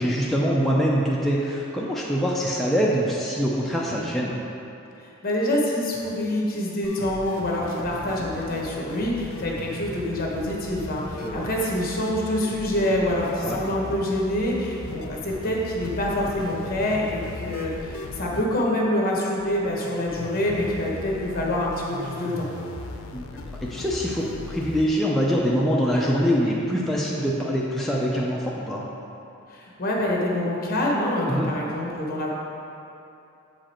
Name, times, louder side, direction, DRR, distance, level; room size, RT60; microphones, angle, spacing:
voice 1, 0.0-4.4 11.2-11.5 13.4-13.6 23.1-28.8 31.3-31.5, equal, ahead, -5 dB, 0.5 m, -24 dB
voice 2, 5.0-22.5 29.5-32.3, left 1 dB, 45° left, -3 dB, 1.2 m, -26 dB
sound 1, 6.8-24.8, left 2 dB, 80° left, 0.5 m, -38 dB
7.5 x 5.0 x 4.4 m, 2.8 s
head